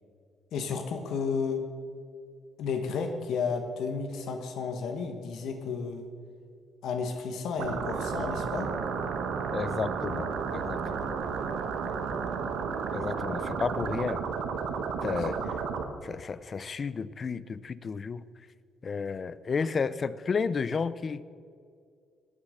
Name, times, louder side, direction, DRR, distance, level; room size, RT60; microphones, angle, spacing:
voice 1, 0.5-1.6 2.6-6.1 6.8-8.7 15.1-15.5, left 5 dB, 80° left, 5 dB, 1.2 m, -32 dB
sound 1, 7.6-15.8, right 6 dB, 90° right, 1.1 m, -32 dB
voice 2, 9.5-11.1 12.9-14.2 15.0-15.4 16.0-18.2 18.8-21.2, left 5 dB, 40° left, 17 dB, 0.5 m, -32 dB
19.0 x 6.4 x 6.4 m, 2.3 s
cardioid pair, 90°, 0 cm